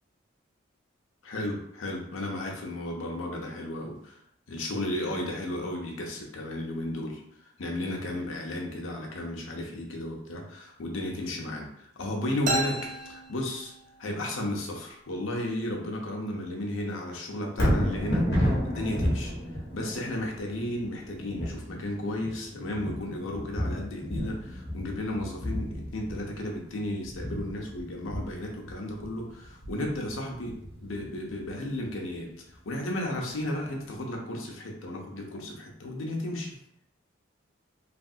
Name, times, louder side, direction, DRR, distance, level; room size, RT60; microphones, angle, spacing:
voice 1, 1.2-4.2 4.5-7.2 7.6-11.7 12.0-13.7 14.0-19.3 19.7-32.3 32.6-36.6, left 1 dB, 85° left, 0 dB, 0.7 m, -34 dB
sound 1, 12.5-14.2, right 2 dB, 35° right, 0.5 m, -32 dB
Thunder, 17.5-31.7 32.2-32.3, equal, 55° left, 1.1 m, -32 dB
3.3 x 2.4 x 2.7 m, 0.75 s
head